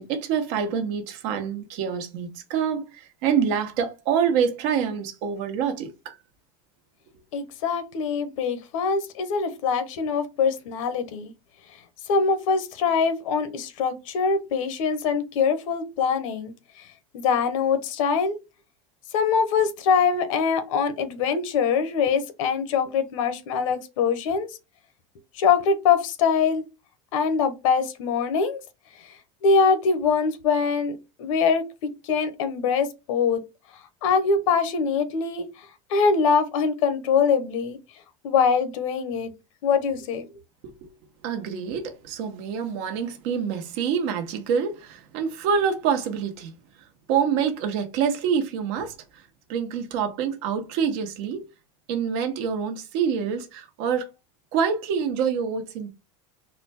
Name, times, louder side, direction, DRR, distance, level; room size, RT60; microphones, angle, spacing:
voice 1, 0.0-6.1 40.8-40.9 41.2-46.5 47.1-48.9 49.5-51.4 51.9-54.0 54.5-55.9, right 7 dB, 60° right, 1.1 m, -26 dB
voice 2, 7.3-11.3 12.1-16.5 17.1-18.4 19.1-24.5 25.3-26.6 27.1-28.6 29.4-33.4 34.0-35.4 35.9-37.8 38.2-39.3 39.6-40.2, left 5 dB, 80° left, 1.0 m, -23 dB
4.2 x 2.3 x 4.2 m
supercardioid pair, 155°, 17 cm